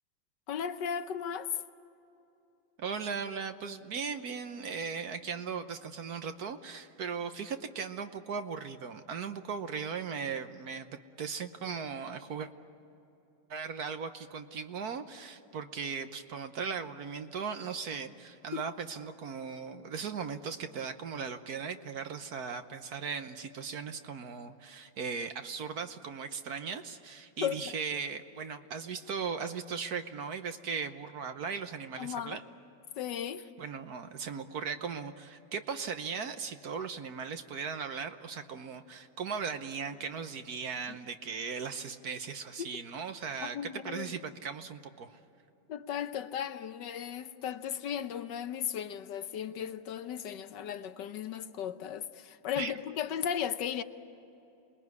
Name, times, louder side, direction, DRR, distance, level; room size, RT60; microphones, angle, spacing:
voice 1, 0.5-1.5 18.5-18.6 27.4-27.7 32.0-32.4 33.0-33.5 40.9-41.0 42.6-42.7 43.4-44.2 45.7-53.8, left 9 dB, 70° left, 1.4 m, -36 dB
voice 2, 2.8-10.9 11.2-12.5 13.5-32.4 33.6-43.6 43.8-45.2 52.6-52.7, right 6 dB, 60° right, 1.3 m, -38 dB
27.5 x 20.5 x 9.5 m
omnidirectional pair, 2.1 m